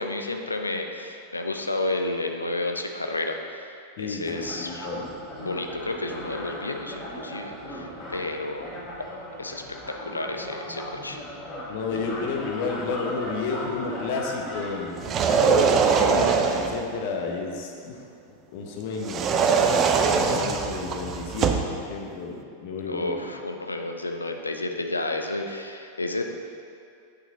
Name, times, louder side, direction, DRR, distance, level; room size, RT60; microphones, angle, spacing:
voice 1, 0.0-4.9 5.4-8.8 9.4-11.2 22.9-26.2, left 2 dB, 80° left, 4 dB, 0.6 m, -31 dB
voice 2, 4.0-5.1 11.7-18.0 18.5-23.2, left 4 dB, 50° left, 2 dB, 1.1 m, -32 dB
sound 1, 4.3-15.3, left 1 dB, 25° left, 1.9 m, -37 dB
sound 2, 15.0-16.8 19.0-21.7, right 6 dB, 30° right, 0.5 m, -22 dB
8.5 x 6.1 x 4.1 m, 2.4 s
figure-of-eight pair, 90°, 0 cm